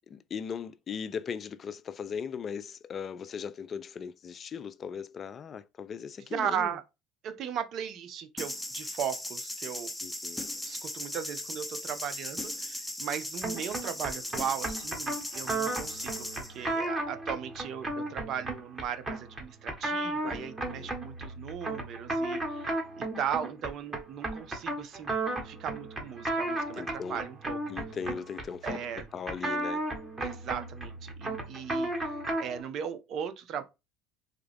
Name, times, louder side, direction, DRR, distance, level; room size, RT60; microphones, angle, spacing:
voice 1, 0.1-6.7 10.0-10.5 20.2-21.0 26.8-27.2 27.7-29.9, left 6 dB, 40° left, 0.3 m, -38 dB
voice 2, 6.3-6.8 7.2-9.9 10.6-25.1 25.4-26.8 27.1-27.6 28.6-29.0 30.2-33.6, right 8 dB, 55° right, 0.6 m, -37 dB
sound 1, 8.4-16.5, left 1 dB, 5° left, 0.7 m, -38 dB
sound 2, 13.4-32.6, right 2 dB, 20° right, 1.4 m, -34 dB
3.5 x 2.3 x 3.4 m
hypercardioid pair, 75°, 0 cm